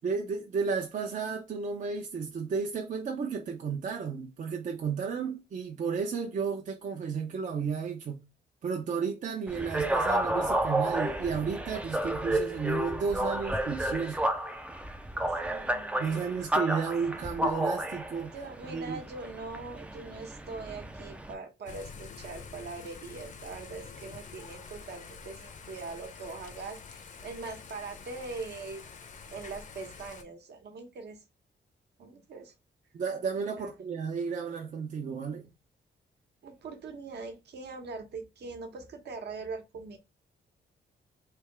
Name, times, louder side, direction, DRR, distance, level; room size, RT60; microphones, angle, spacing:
voice 1, 0.0-8.2 8.6-14.2 16.0-18.4 18.7-19.0 32.9-35.4, right 5 dB, 45° right, 0.6 m, -33 dB
sound 1, 9.5-21.3, right 1 dB, 5° right, 0.4 m, -31 dB
voice 2, 15.3-16.4 17.1-17.2 18.3-28.8 29.3-31.2 32.0-32.5 33.6-33.7 36.4-40.0, right 4 dB, 65° right, 1.1 m, -42 dB
Thunder / Rain, 21.7-30.2, left 5 dB, 40° left, 0.6 m, -47 dB
3.4 x 2.9 x 4.6 m
wide cardioid pair, 155°, 19 cm